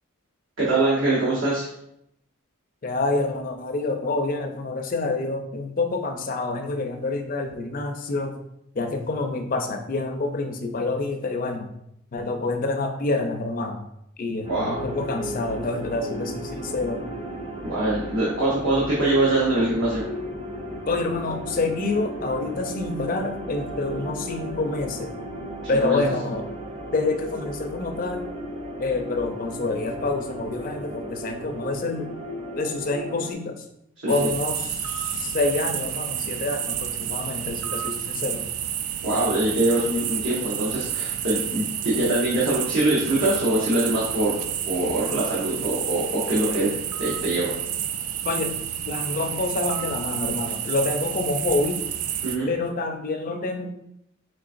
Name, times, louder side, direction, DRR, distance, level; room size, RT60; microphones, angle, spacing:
voice 1, 0.6-1.7 14.5-14.8 17.6-20.0 25.6-26.0 34.0-34.3 39.0-44.4 44.7-46.7 47.0-47.5 52.2-52.5, right 2 dB, 60° right, -7 dB, 0.9 m, -23 dB
voice 2, 2.8-8.4 8.7-11.7 12.1-13.9 14.2-17.0 20.9-25.1 25.7-26.5 26.9-28.3 28.8-32.1 32.5-33.7 34.1-38.5 48.2-51.8 52.5-53.7, left 3 dB, 40° left, 5 dB, 0.4 m, -27 dB
sound 1, 14.4-33.3, right 1 dB, 25° right, 0.5 m, -35 dB
sound 2, 34.1-52.4, right 10 dB, 90° right, 0.3 m, -30 dB
3.8 x 3.4 x 2.5 m, 0.78 s
head